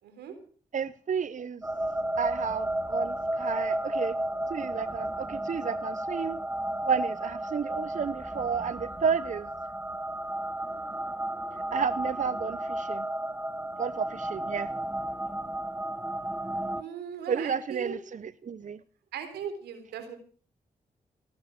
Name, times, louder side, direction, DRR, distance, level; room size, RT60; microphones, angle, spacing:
voice 1, 0.0-0.3 16.7-18.0 19.1-20.2, right 7 dB, 90° right, 8 dB, 3.8 m, -38 dB
voice 2, 0.7-1.6 2.2-4.1 4.5-6.4 6.8-9.5 11.7-13.0 13.8-14.7 17.3-18.8, right 6 dB, 50° right, 16 dB, 0.8 m, -31 dB
sound 1, 1.6-16.8, right 1 dB, 10° right, 1.1 m, -33 dB
18.5 x 10.5 x 6.4 m, 0.43 s
supercardioid pair, 45°, 16 cm